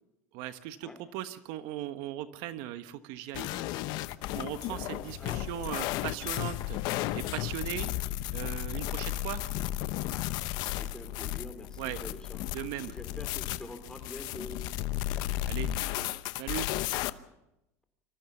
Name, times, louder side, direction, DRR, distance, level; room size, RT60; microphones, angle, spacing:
voice 1, 0.3-3.6 4.3-6.8 7.1-7.9 8.3-9.4 11.8-12.0 12.5-12.9 15.5-15.7 16.3-16.7, right 13 dB, 65° right, 11 dB, 1.2 m, -38 dB
sound 1, 3.3-17.1, left 15 dB, 60° left, 0.9 m, -34 dB
voice 2, 4.6-5.4 10.1-12.5 12.9-14.6 17.3-17.4, left 1 dB, 10° left, 8 dB, 3.6 m, -46 dB
25.5 x 15.0 x 7.1 m, 0.88 s
supercardioid pair, 100°, 8 cm